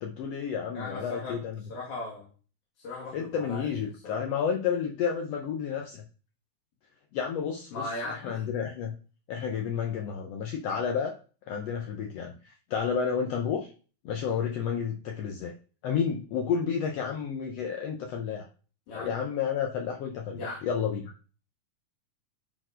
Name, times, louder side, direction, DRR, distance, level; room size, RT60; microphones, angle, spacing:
voice 1, 0.0-1.6 3.1-6.0 7.1-9.0 9.3-11.2 11.5-13.7 14.0-15.5 15.8-18.4 18.9-21.1, left 7 dB, 85° left, 3 dB, 1.4 m, -31 dB
voice 2, 0.7-1.4 1.7-2.3 2.8-3.7 4.0-4.2 7.7-8.4 18.9-19.2 20.4-20.6, left 2 dB, 65° left, -4 dB, 3.5 m, -38 dB
10.5 x 4.3 x 5.0 m, 0.40 s
omnidirectional pair, 3.8 m